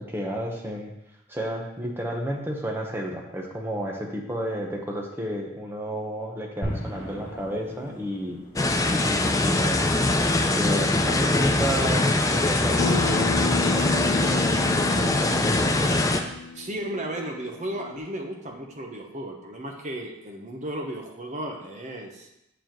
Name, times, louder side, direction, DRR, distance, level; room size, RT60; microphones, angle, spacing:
voice 1, 0.1-0.9 1.3-8.4 8.9-10.0 10.6-15.9, equal, 10° right, 0 dB, 1.0 m, -31 dB
sound 1, 6.6-16.9, equal, 45° left, 2.1 m, -42 dB
sound 2, 8.6-16.2, left 2 dB, 15° left, 0.4 m, -22 dB
Acoustic guitar, 12.8-18.0, left 6 dB, 75° left, 0.4 m, -33 dB
voice 2, 16.5-22.3, right 1 dB, 35° right, 2 dB, 1.0 m, -34 dB
7.0 x 7.0 x 3.1 m, 0.87 s
head